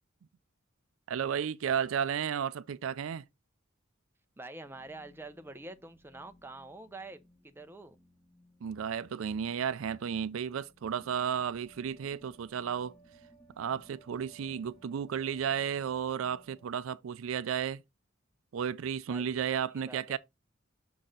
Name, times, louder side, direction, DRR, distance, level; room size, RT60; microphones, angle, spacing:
voice 1, 1.1-3.2 8.6-12.9 13.6-17.8 18.5-20.2, right 8 dB, 75° right, 0.4 m, -33 dB
voice 2, 4.4-7.2 7.5-8.0 19.1-20.2, right 2 dB, 10° right, 0.5 m, -46 dB
sound 1, 4.6-16.7, right 2 dB, 10° left, 2.0 m, -61 dB
6.2 x 4.2 x 3.7 m
head